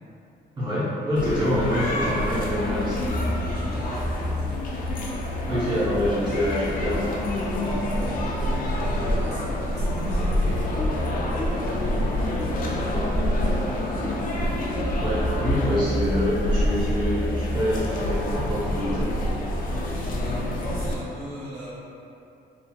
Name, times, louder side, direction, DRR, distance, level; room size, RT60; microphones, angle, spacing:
voice 1, 0.6-3.1 5.5-7.2 15.0-19.1, left 1 dB, 25° right, -11 dB, 0.7 m, -26 dB
sound 1, 1.2-20.9, left 1 dB, 50° left, 0.4 m, -26 dB
voice 2, 3.5-4.6 7.9-8.3 8.7-11.0 11.3-13.2 19.7-21.7, equal, 70° right, -10 dB, 1.2 m, -39 dB
2.7 x 2.5 x 2.3 m, 2.7 s
cardioid pair, 115°, 18 cm